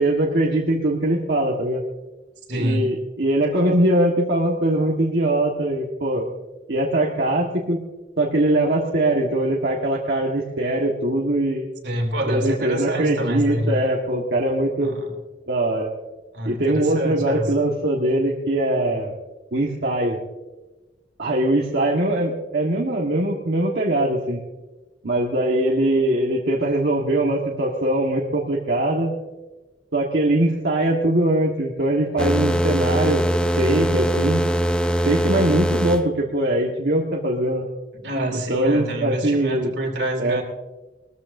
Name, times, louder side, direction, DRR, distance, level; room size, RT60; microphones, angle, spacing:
voice 1, 0.0-1.8 2.6-6.3 6.7-7.8 8.2-11.7 12.3-14.9 15.5-15.9 16.4-19.1 19.5-20.2 21.2-24.4 25.0-29.1 29.9-33.2 33.6-34.4 35.0-37.7 38.3-39.7 40.2-40.4, right 1 dB, 65° right, -3 dB, 1.5 m, -21 dB
voice 2, 2.5-2.9 11.8-13.8 14.8-15.1 16.3-17.5 38.0-40.4, right 1 dB, 85° right, 2 dB, 2.8 m, -26 dB
sound 1, 32.2-36.0, equal, 5° left, 0.6 m, -21 dB
20.5 x 14.0 x 2.7 m, 1.2 s
head